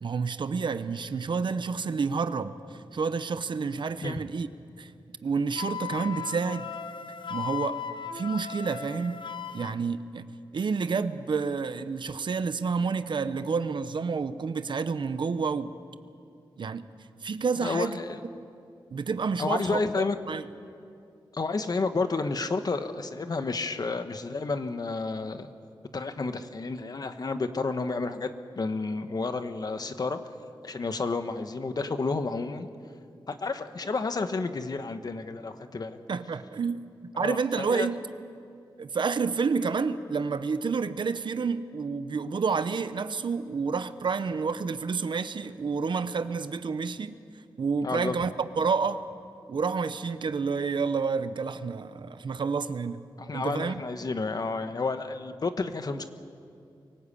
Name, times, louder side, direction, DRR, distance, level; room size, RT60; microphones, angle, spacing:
voice 1, 0.0-4.5 4.8-4.9 5.2-6.7 7.3-7.8 8.1-9.2 9.5-10.2 10.5-15.7 16.6-16.9 17.2-18.0 18.3-18.4 18.9-20.4 36.1-36.8 37.2-38.0 38.8-47.2 47.6-49.1 49.5-53.0 53.3-53.8, right 5 dB, 65° right, 12 dB, 0.9 m, -29 dB
Wind instrument woodwind instrument, 5.6-9.8, left 7 dB, 65° left, 0.9 m, -37 dB
voice 2, 17.6-18.2 19.4-20.2 21.3-25.5 25.9-30.2 30.6-32.7 33.3-36.0 37.1-37.9 47.8-48.2 53.2-56.0, left 3 dB, 50° left, 9 dB, 1.2 m, -31 dB
24.0 x 18.0 x 8.5 m, 2.5 s
wide cardioid pair, 95°, 9 cm